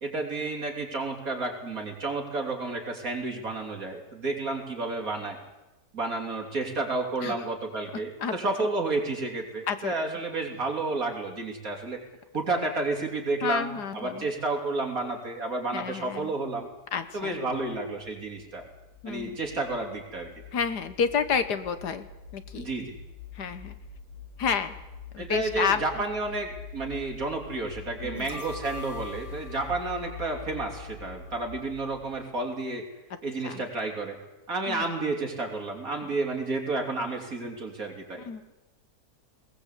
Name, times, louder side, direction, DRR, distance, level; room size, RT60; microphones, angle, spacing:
voice 1, 0.0-5.4 5.9-12.0 12.3-16.7 17.1-18.6 19.1-20.3 22.6-23.0 25.2-32.9 33.2-34.2 34.5-38.3, right 3 dB, 55° right, 2 dB, 3.7 m, -31 dB
voice 2, 13.4-14.3 15.7-16.3 16.9-17.4 19.0-19.4 20.5-22.1 22.3-22.7 23.4-23.8 24.4-24.8 25.1-25.8 28.0-28.3 33.4-33.6 34.7-34.9 38.2-38.4, left 6 dB, 75° left, 11 dB, 1.8 m, -30 dB
sound 1, 17.0-32.3, left 5 dB, 55° left, 4.4 m, -45 dB
sound 2, 28.1-31.3 31.6-31.7, left 1 dB, 30° right, 3.1 m, -44 dB
20.5 x 18.5 x 8.4 m, 1.0 s
omnidirectional pair, 1.8 m